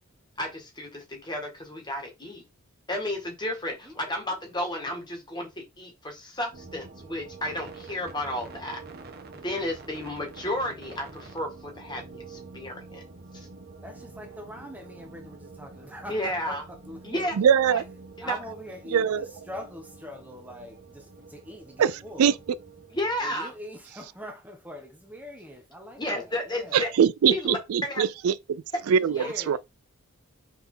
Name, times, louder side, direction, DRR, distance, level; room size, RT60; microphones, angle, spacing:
voice 1, 0.4-2.4 2.9-5.5 5.8-8.8 9.4-13.0 13.3-13.5 16.1-16.6 17.0-17.3 17.7-17.8 18.2-18.4 22.9-23.5 26.0-26.9 27.3-28.0 29.2-29.3, left 1 dB, 20° left, 1.8 m, -32 dB
voice 2, 3.8-4.6 13.8-17.4 18.2-22.4 23.2-26.9 28.9-29.6, equal, 5° right, 1.2 m, -43 dB
sound 1, 6.5-23.2, right 3 dB, 45° right, 1.2 m, -47 dB
voice 3, 17.4-17.8 18.9-19.2 21.8-21.9 22.2-22.3 26.7-29.6, right 7 dB, 75° right, 0.3 m, -22 dB
5.5 x 4.4 x 3.8 m
head